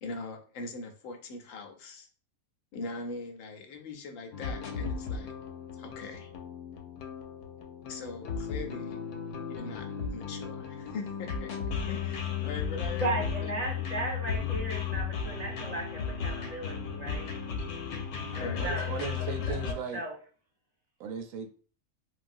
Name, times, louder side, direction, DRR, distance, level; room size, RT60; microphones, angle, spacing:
voice 1, 0.0-2.1 2.7-5.3 5.7-6.3 7.9-9.0 9.5-11.5 11.8-14.0 18.0-18.7, left 3 dB, 70° left, 0.9 m, -42 dB
sound 1, 4.3-19.7, left 6 dB, 90° left, 1.1 m, -35 dB
voice 2, 13.0-17.3 18.3-20.1, right 1 dB, 30° right, 1.0 m, -36 dB
voice 3, 18.6-20.0 21.0-21.5, right 6 dB, 70° right, 0.9 m, -37 dB
3.2 x 2.3 x 2.5 m
omnidirectional pair, 1.5 m